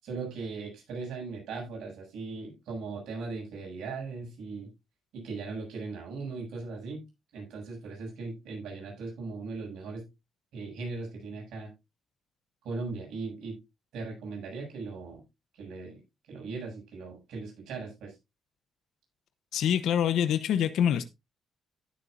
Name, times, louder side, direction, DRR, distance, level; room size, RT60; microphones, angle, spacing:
voice 1, 0.0-4.7 5.1-7.0 7.3-10.1 10.5-11.7 12.6-13.6 13.9-15.2 15.5-16.0 16.3-18.1, right 4 dB, 80° right, 7.3 m, -38 dB
voice 2, 19.5-21.0, left 9 dB, 80° left, 0.9 m, -25 dB
15.5 x 7.2 x 2.6 m
cardioid pair, 90°, 0 cm